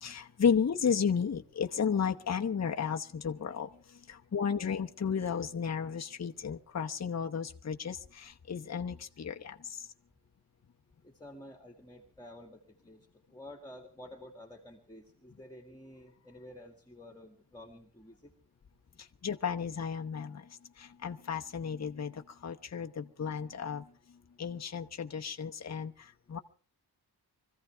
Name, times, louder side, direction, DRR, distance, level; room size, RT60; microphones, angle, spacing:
voice 1, 0.0-3.7 4.3-9.5 19.2-20.4 21.0-22.1 22.4-23.8 24.4-25.9 26.3-26.4, left 6 dB, 40° left, 4 dB, 0.9 m, -33 dB
voice 2, 11.0-18.3, left 1 dB, 10° left, 3 dB, 2.0 m, -51 dB
24.5 x 15.5 x 3.4 m, 0.40 s
wide cardioid pair, 180°, 40 cm